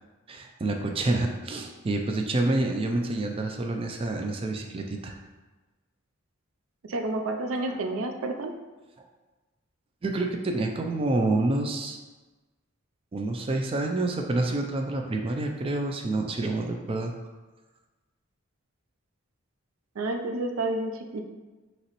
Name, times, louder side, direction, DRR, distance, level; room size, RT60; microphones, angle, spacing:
voice 1, 0.3-5.2 7.7-7.8 10.0-12.0 13.1-17.1, right 2 dB, 25° right, 3 dB, 0.3 m, -28 dB
voice 2, 6.9-8.5 20.0-21.2, right 2 dB, 85° right, 5 dB, 0.5 m, -30 dB
5.5 x 3.0 x 2.9 m, 1.2 s
head